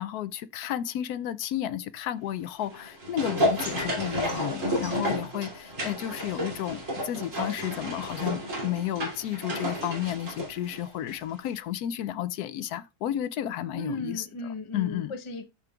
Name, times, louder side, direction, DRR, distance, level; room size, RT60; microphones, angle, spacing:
voice 1, 0.0-14.3 14.7-15.1, left 11 dB, 75° left, 1.0 m, -32 dB
sound 1, 2.6-11.2 11.5-11.6, equal, 50° right, 3.1 m, -31 dB
voice 2, 13.7-15.4, left 2 dB, 30° left, 0.6 m, -36 dB
12.5 x 5.2 x 2.3 m
omnidirectional pair, 1.7 m